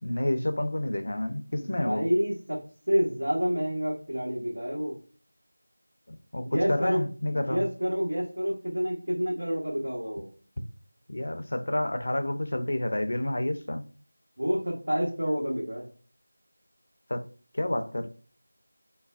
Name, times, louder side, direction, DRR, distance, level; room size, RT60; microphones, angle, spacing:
voice 1, 0.0-2.0 6.1-7.7 11.1-13.9 17.1-17.2 17.5-18.1, left 1 dB, 50° left, 0.4 m, -29 dB
voice 2, 1.6-2.6 2.9-4.9 6.4-7.0 7.3-10.3 14.4-15.9, equal, 70° right, 1.0 m, -28 dB
3.2 x 2.1 x 2.3 m
figure-of-eight pair, 175°, 0 cm